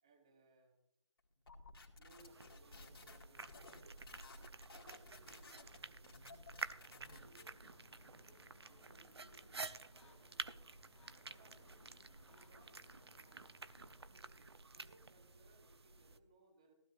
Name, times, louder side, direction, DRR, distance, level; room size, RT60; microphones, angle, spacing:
voice 1, 0.0-0.8 1.9-3.8 4.3-10.5 11.2-11.9 12.2-12.9 13.1-13.6 14.3-16.7, right 2 dB, 10° right, 5 dB, 0.7 m, -68 dB
sound 1, 1.5-7.4, left 3 dB, 50° left, 2.0 m, -57 dB
sound 2, 2.2-16.2, right 4 dB, 60° right, 0.7 m, -51 dB
sound 3, 7.0-14.0, left 2 dB, 70° left, 1.4 m, -67 dB
15.5 x 13.5 x 2.4 m, 0.73 s
figure-of-eight pair, 170°, 16 cm